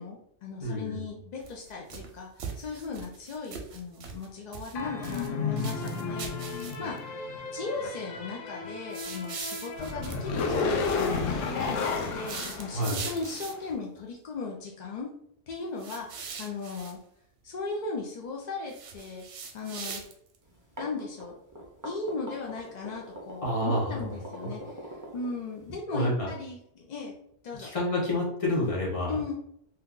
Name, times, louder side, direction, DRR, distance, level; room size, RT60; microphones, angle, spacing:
voice 1, 0.0-2.3 2.5-7.0 7.5-15.1 15.5-17.0 17.4-19.2 19.5-20.0 20.8-21.4 21.8-27.2 27.4-27.7 29.1-29.3, left 4 dB, 65° left, -1 dB, 0.4 m, -37 dB
voice 2, 0.6-1.0 12.7-13.0 23.4-24.0 24.4-24.5 25.9-26.3 27.6-29.1, left 1 dB, 30° left, -3 dB, 0.9 m, -28 dB
sound 1, 1.4-2.1 2.4-4.3 4.5-5.3 5.6-7.0 8.9-10.2 12.1-13.7 15.8-16.9 18.7-20.4, right 6 dB, 70° right, 0.8 m, -40 dB
sound 2, 4.7-13.4, left 4 dB, 85° left, 0.9 m, -32 dB
sound 3, 20.5-25.7, right 1 dB, 25° right, 0.4 m, -42 dB
2.8 x 2.3 x 3.6 m, 0.71 s
omnidirectional pair, 1.3 m